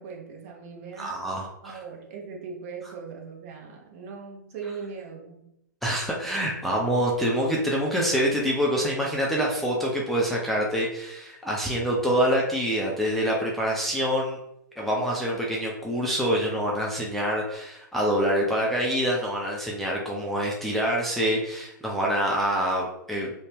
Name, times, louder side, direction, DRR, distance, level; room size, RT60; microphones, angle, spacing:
voice 1, 0.0-1.2 1.6-5.5, right 5 dB, 45° right, 0 dB, 0.7 m, -39 dB
voice 2, 1.0-1.8 5.8-14.4 14.8-23.3, equal, ahead, -4 dB, 0.4 m, -26 dB
2.6 x 2.1 x 3.3 m, 0.79 s
hypercardioid pair, 115°, 10 cm